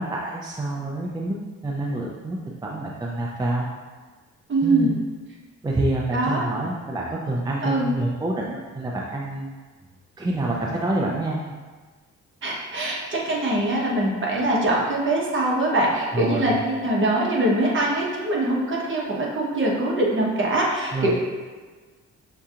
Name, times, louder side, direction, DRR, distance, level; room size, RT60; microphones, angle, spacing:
voice 1, 0.0-1.4 1.6-3.7 4.6-5.0 5.6-9.5 10.2-11.4 16.1-16.6 20.9-21.1, right 2 dB, 15° right, -2 dB, 0.4 m, -27 dB
voice 2, 4.5-4.9 6.1-6.4 7.6-7.9 12.4-21.1, right 1 dB, 40° right, -3 dB, 1.1 m, -23 dB
6.6 x 2.8 x 2.5 m, 1.4 s
cardioid pair, 90°, 30 cm